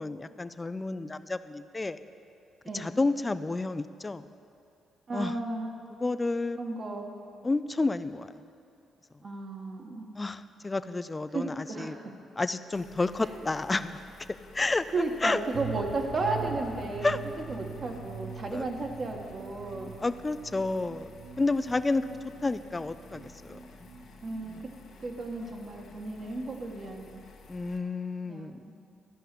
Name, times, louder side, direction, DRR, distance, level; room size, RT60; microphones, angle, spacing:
voice 1, 0.0-2.0 2.7-4.3 5.1-5.3 6.0-6.6 7.4-8.4 10.1-12.0 12.4-14.0 14.3-14.9 15.2-15.4 17.0-17.2 18.5-18.7 20.0-21.1 21.4-22.0 22.4-23.9 24.5-24.6 27.5-28.7, left 3 dB, 20° left, 13 dB, 0.4 m, -30 dB
voice 2, 2.6-3.0 5.1-5.7 6.6-7.1 9.2-10.1 11.3-12.1 13.2-13.4 14.9-17.1 17.5-19.9 24.2-24.7 25.0-27.2 28.3-28.8, right 3 dB, 45° right, 2 dB, 1.5 m, -34 dB
sound 1, 12.7-27.8, left 4 dB, 70° left, 1.4 m, -53 dB
sound 2, 15.5-25.1 25.4-25.5 25.8-25.9, right 6 dB, 85° right, 0.8 m, -43 dB
13.0 x 5.6 x 8.4 m, 2.7 s
cardioid pair, 90°, 0 cm